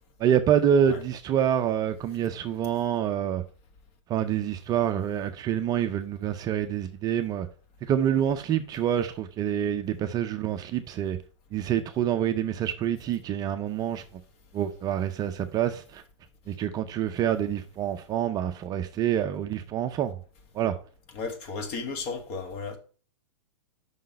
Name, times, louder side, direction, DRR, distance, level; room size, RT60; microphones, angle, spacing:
voice 1, 0.2-3.4 4.1-7.5 7.8-11.2 11.5-14.0 14.5-16.0 16.5-20.2 20.5-20.8, right 9 dB, 25° right, 0.4 m, -27 dB
voice 2, 21.1-22.8, left 4 dB, 40° left, 1.5 m, -34 dB
5.6 x 3.8 x 5.2 m
hypercardioid pair, 120°, 16 cm